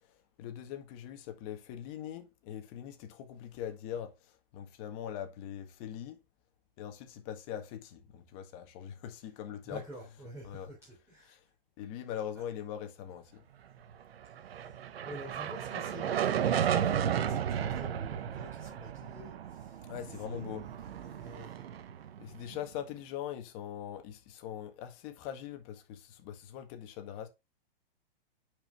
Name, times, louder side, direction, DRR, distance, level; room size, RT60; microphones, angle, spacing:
voice 1, 0.4-4.2 4.5-6.2 6.8-9.8 10.4-10.7 11.2-11.4 11.8-13.4 19.9-20.7 22.2-27.3, left 10 dB, 35° left, 1.7 m, -42 dB
voice 2, 9.7-11.3 14.6-14.7 15.0-19.8 20.3-20.7 21.1-21.6, right 1 dB, 10° right, 3.6 m, -48 dB
sound 1, 14.2-22.6, right 9 dB, 80° right, 1.1 m, -34 dB
9.1 x 5.1 x 3.5 m
hypercardioid pair, 150°, 30 cm